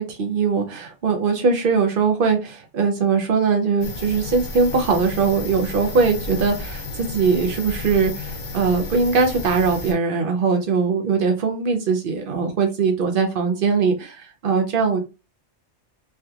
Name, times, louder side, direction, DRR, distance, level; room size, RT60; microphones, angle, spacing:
voice 1, 0.0-15.0, right 5 dB, 55° right, 4 dB, 0.8 m, -21 dB
sound 1, 3.8-9.9, left 3 dB, 50° left, 0.6 m, -33 dB
3.4 x 2.8 x 2.3 m, 0.29 s
omnidirectional pair, 1.3 m